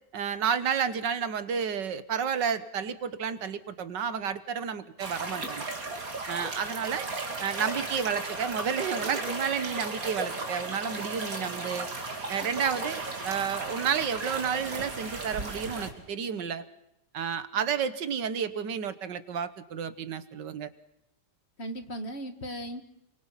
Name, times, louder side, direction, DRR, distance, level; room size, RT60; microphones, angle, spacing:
voice 1, 0.1-5.7 6.3-7.1 7.4-11.9 12.3-16.6 17.1-20.7, right 7 dB, 80° right, 13 dB, 1.9 m, -31 dB
sound 1, 5.0-15.9, right 3 dB, 55° right, 3.3 m, -35 dB
voice 2, 21.6-22.8, equal, 35° left, 7 dB, 2.1 m, -39 dB
29.0 x 25.0 x 5.8 m, 0.86 s
omnidirectional pair, 1.9 m